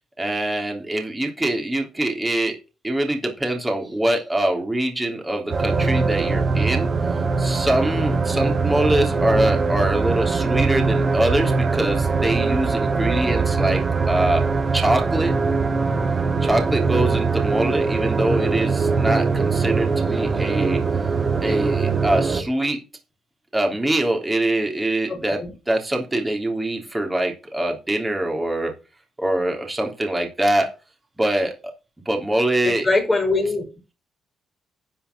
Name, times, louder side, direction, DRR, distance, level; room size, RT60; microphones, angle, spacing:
voice 1, 0.2-2.6 2.8-6.9 7.4-14.4 14.7-15.3 16.4-20.8 21.4-22.8 23.5-28.7 29.2-30.7 31.2-31.7 32.0-32.9, right 1 dB, 15° right, 3.4 m, -23 dB
sound 1, 5.5-22.4, right 4 dB, 35° right, 2.4 m, -22 dB
voice 2, 25.1-25.5 32.6-33.6, left 2 dB, 15° left, 4.5 m, -22 dB
10.5 x 5.6 x 6.9 m
cardioid pair, 90°, 0 cm